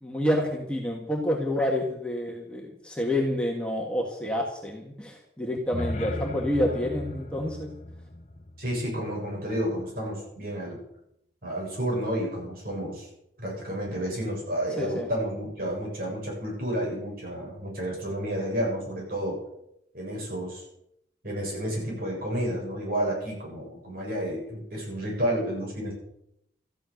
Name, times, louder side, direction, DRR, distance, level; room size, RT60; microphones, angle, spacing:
voice 1, 0.0-7.7 14.8-15.1, left 1 dB, 5° left, -1 dB, 2.0 m, -28 dB
sound 1, 5.5-9.6, left 1 dB, 40° left, 1.1 m, -37 dB
voice 2, 8.6-10.8 11.4-13.1 13.4-19.4 19.9-20.6 21.2-25.9, equal, 55° right, -2 dB, 7.3 m, -31 dB
14.0 x 11.5 x 6.6 m, 0.77 s
head